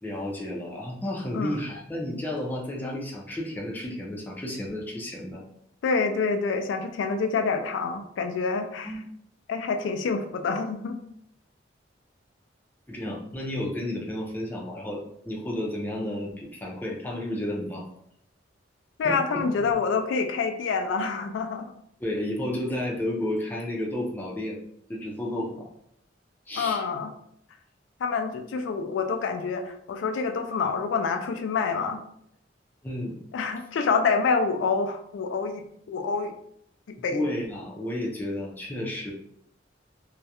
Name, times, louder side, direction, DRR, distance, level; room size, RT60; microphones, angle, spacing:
voice 1, 0.0-5.4 8.8-9.0 12.9-15.0 15.3-17.9 19.0-19.2 19.6-19.7 22.0-24.6 24.9-25.7 26.5-26.8 32.8-33.1 37.1-39.1, left 1 dB, 10° left, -3 dB, 0.4 m, -32 dB
voice 2, 5.8-9.0 9.5-11.0 19.0-21.7 26.6-27.1 28.0-32.0 33.3-36.3 36.9-37.2, left 5 dB, 90° left, 6 dB, 0.3 m, -27 dB
2.3 x 2.0 x 2.8 m, 0.71 s
head